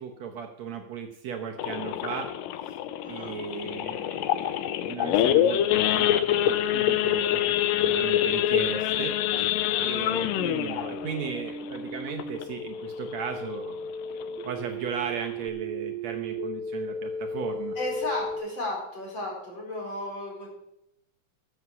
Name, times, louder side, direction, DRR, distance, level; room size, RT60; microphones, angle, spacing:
voice 1, 0.0-2.3 2.7-2.8 3.1-13.8 14.1-17.8, right 6 dB, 65° right, 3 dB, 1.9 m, -36 dB
Idling / Accelerating revving vroom / Sawing, 1.6-12.7 13.1-13.3 13.5-13.6 14.1-14.4 14.9-15.0 15.2-15.5, left 12 dB, 85° left, 2.3 m, -26 dB
voice 2, 3.0-3.4 10.0-10.3 17.8-20.5, left 2 dB, 35° left, -2 dB, 5.2 m, -34 dB
sound 1, 5.2-18.4, equal, 5° right, 4.1 m, -38 dB
13.5 x 8.1 x 6.1 m, 0.83 s
omnidirectional pair, 4.0 m